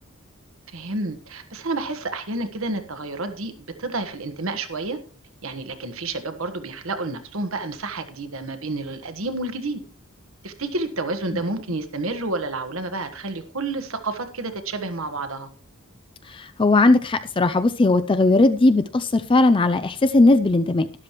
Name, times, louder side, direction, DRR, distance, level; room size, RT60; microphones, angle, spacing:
voice 1, 0.7-5.0 5.4-9.8 10.4-15.5, right 2 dB, 70° right, 1.4 m, -30 dB
voice 2, 16.4-20.9, left 2 dB, 25° left, 0.4 m, -18 dB
12.5 x 11.5 x 3.1 m
head